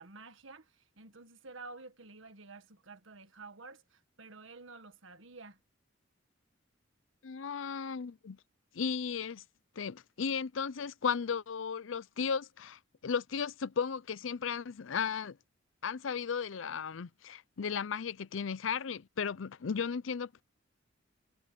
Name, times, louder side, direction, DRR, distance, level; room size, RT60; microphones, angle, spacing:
voice 1, 0.0-5.6, right 3 dB, 80° right, 1.7 m, -51 dB
voice 2, 7.2-8.4 8.7-9.4 9.8-15.4 15.8-20.4, left 6 dB, 80° left, 0.5 m, -35 dB
head